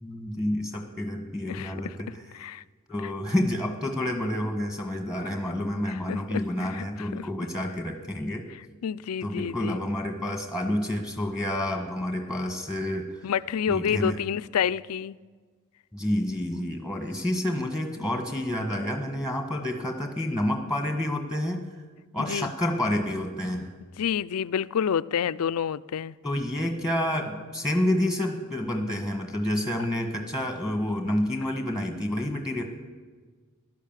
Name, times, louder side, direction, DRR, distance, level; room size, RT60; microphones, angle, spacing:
voice 1, 0.0-2.2 2.9-8.4 9.2-13.1 13.7-14.2 15.9-21.6 22.1-23.7 26.2-32.6, left 1 dB, 5° right, 4 dB, 1.5 m, -29 dB
voice 2, 1.5-1.9 2.3-2.6 5.9-7.3 8.8-9.8 13.2-15.2 22.2-22.5 24.0-26.1, left 8 dB, 80° left, 17 dB, 0.4 m, -29 dB
16.0 x 11.5 x 7.4 m, 1.5 s
head